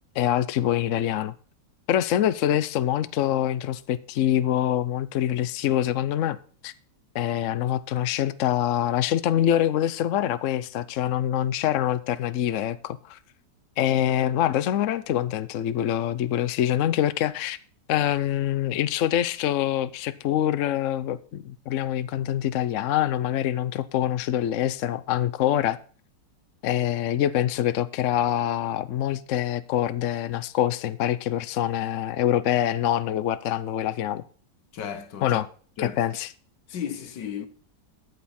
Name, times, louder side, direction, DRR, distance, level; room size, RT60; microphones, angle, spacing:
voice 1, 0.2-1.3 1.9-6.4 6.6-6.7 7.1-13.2 13.8-17.6 17.9-25.8 26.6-34.2 35.2-35.5 35.8-36.3, left 11 dB, 60° left, 0.8 m, -25 dB
voice 2, 34.7-35.4 35.8-36.0 36.7-37.5, left 8 dB, 80° left, 1.8 m, -34 dB
14.0 x 7.9 x 4.3 m
omnidirectional pair, 1.9 m